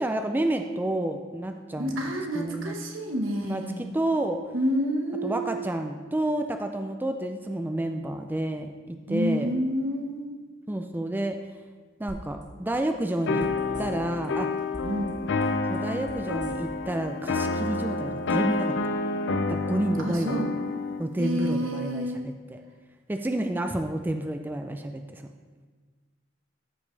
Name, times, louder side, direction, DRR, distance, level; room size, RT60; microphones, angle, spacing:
voice 1, 0.0-2.0 2.3-2.7 3.4-3.6 3.9-4.5 5.2-9.5 10.7-11.4 12.0-13.5 13.8-14.6 15.7-18.8 19.5-20.4 21.0-22.6 23.1-25.3, right 1 dB, 10° right, 6 dB, 0.3 m, -29 dB
voice 2, 1.8-3.8 4.5-5.6 9.1-10.3 14.8-15.2 20.0-20.5 21.2-22.2, equal, 85° right, 1 dB, 1.3 m, -29 dB
sound 1, 12.1-12.4 12.7-14.3 14.6-15.1 15.4-16.9 17.2-17.3, right 1 dB, 40° right, 1.7 m, -43 dB
sound 2, 13.3-21.1, left 3 dB, 60° left, 0.5 m, -29 dB
14.0 x 5.3 x 3.3 m, 1.5 s
head